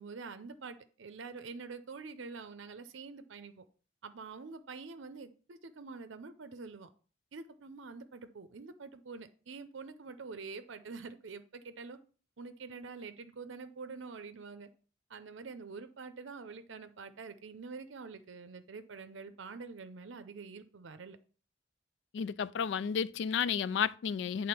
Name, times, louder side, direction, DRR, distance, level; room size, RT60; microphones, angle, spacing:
voice 1, 0.0-3.6 4.0-6.9 7.3-12.0 12.4-14.7 15.1-21.2, right 4 dB, 75° right, 0.6 m, -46 dB
voice 2, 22.1-24.5, left 7 dB, 65° left, 0.3 m, -32 dB
8.6 x 3.7 x 5.9 m
head